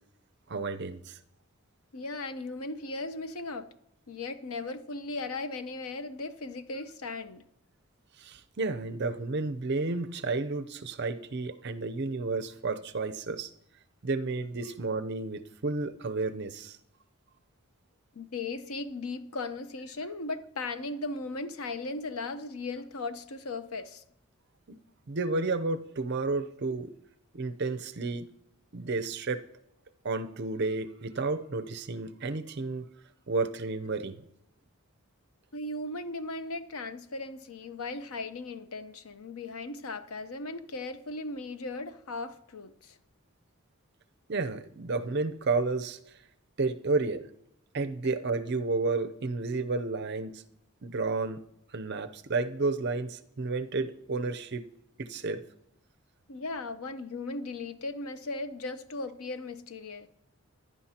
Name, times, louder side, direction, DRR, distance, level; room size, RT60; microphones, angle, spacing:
voice 1, 0.5-1.2 8.2-13.5 14.0-16.8 24.7-24.8 25.1-26.9 27.3-28.3 28.7-29.4 30.0-32.9 33.3-34.3 44.3-46.0 46.6-47.2 47.7-50.4 50.8-51.4 51.7-54.7 55.0-55.4, right 3 dB, 50° right, 0.6 m, -31 dB
voice 2, 1.9-3.7 4.1-7.4 14.6-14.8 18.1-24.0 35.5-43.0 56.3-60.1, left 3 dB, 85° left, 0.8 m, -37 dB
15.5 x 11.0 x 2.9 m
head